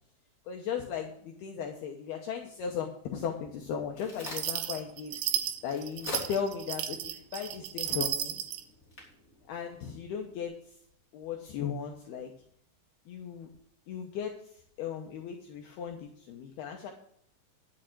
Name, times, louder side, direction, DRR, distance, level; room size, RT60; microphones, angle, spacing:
voice 1, 0.5-5.2 5.6-8.4 9.5-10.5 11.1-12.3 13.1-13.5 13.9-14.3 14.8-16.9, left 7 dB, 75° left, 2 dB, 2.5 m, -36 dB
Crack, 3.5-10.5, left 2 dB, 20° left, 3.1 m, -46 dB
sound 1, 4.2-8.6, right 11 dB, 80° right, 2.9 m, -34 dB
11.0 x 7.7 x 6.1 m, 0.66 s
omnidirectional pair, 5.4 m